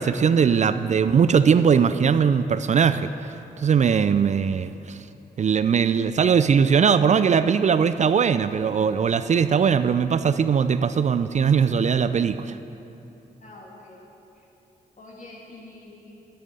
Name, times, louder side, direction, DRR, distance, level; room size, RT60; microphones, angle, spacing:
voice 1, 0.0-3.1 3.6-5.0 5.4-12.6, right 6 dB, 45° right, 11 dB, 0.4 m, -20 dB
voice 2, 13.4-14.0 14.3-14.5 15.0-16.1, left 2 dB, 50° left, -3 dB, 2.5 m, -45 dB
10.0 x 8.9 x 5.4 m, 2.9 s
cardioid pair, 60°, 17 cm